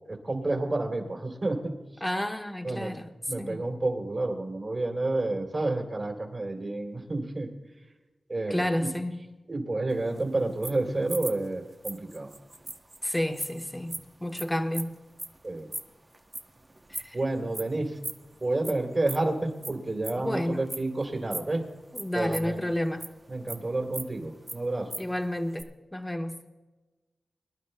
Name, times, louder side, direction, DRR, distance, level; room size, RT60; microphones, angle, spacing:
voice 1, 0.1-1.7 2.6-2.9 3.3-7.5 8.3-8.9 9.5-12.3 15.4-15.7 17.1-18.0 18.4-21.6 22.1-22.6 23.3-24.9, right 2 dB, 40° right, 3.2 m, -30 dB
voice 2, 2.0-3.6 8.5-9.3 13.0-15.0 16.9-17.2 20.2-20.7 21.9-23.1 25.0-26.4, left 1 dB, 10° left, 1.2 m, -31 dB
sound 1, 9.9-17.2 17.5-17.7 18.0-18.7 19.0-21.5 21.9-23.2 23.5-25.1 25.4-25.6, right 2 dB, 25° right, 0.8 m, -38 dB
24.5 x 11.5 x 2.2 m
wide cardioid pair, 90°, 0 cm